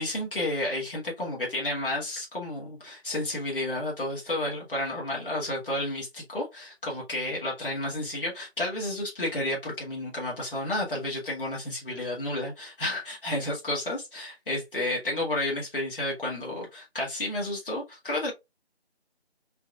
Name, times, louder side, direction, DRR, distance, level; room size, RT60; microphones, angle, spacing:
voice 1, 0.0-18.3, left 1 dB, 55° left, 1.8 m, -31 dB
4.5 x 2.7 x 2.3 m
figure-of-eight pair, 180°, 33 cm